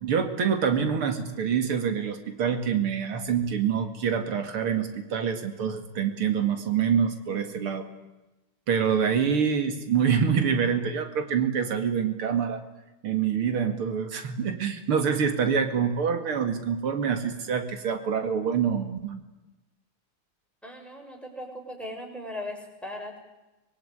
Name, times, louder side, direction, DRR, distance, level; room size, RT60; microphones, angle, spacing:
voice 1, 0.0-7.9 8.7-12.6 13.0-19.2, right 7 dB, 85° right, 8 dB, 3.0 m, -26 dB
voice 2, 20.6-23.2, left 1 dB, ahead, 2 dB, 6.7 m, -38 dB
24.5 x 23.0 x 9.9 m, 1.0 s
omnidirectional pair, 2.3 m